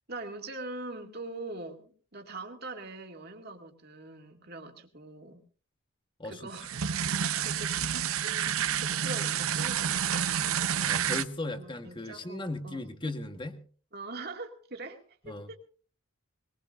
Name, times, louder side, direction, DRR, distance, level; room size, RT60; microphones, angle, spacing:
voice 1, 0.1-5.4 6.2-6.8 7.4-7.8 8.2-11.1 11.5-12.9 13.9-15.6, right 2 dB, 45° right, 3 dB, 2.2 m, -43 dB
sound 1, 6.5-11.2, right 8 dB, 75° right, 0.8 m, -29 dB
voice 2, 10.8-13.6 15.3-15.5, left 2 dB, 20° left, 8 dB, 1.4 m, -37 dB
21.0 x 20.0 x 2.6 m, 0.40 s
head